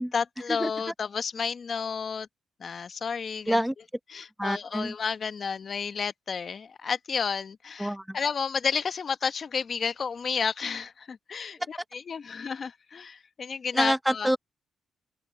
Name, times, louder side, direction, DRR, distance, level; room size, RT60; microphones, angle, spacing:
voice 1, 0.0-2.3 2.6-3.6 4.1-14.3, left 6 dB, 50° left, 1.1 m, -31 dB
voice 2, 4.4-4.9 7.8-8.2 13.7-14.4, equal, 5° right, 1.2 m, -27 dB
cardioid pair, 65°, 0 cm